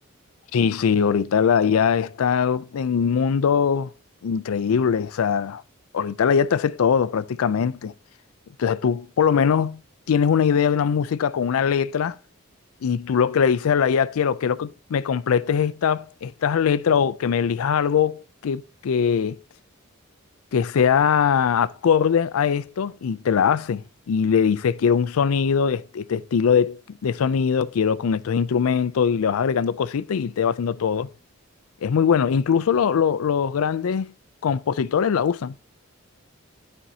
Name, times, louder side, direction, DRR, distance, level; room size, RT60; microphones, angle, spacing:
voice 1, 0.5-3.9 4.2-5.6 5.9-7.9 8.6-9.8 10.1-12.2 12.8-19.4 20.5-31.1 31.8-34.1 34.4-35.5, left 7 dB, 90° left, 0.4 m, -21 dB
12.5 x 4.4 x 2.7 m
head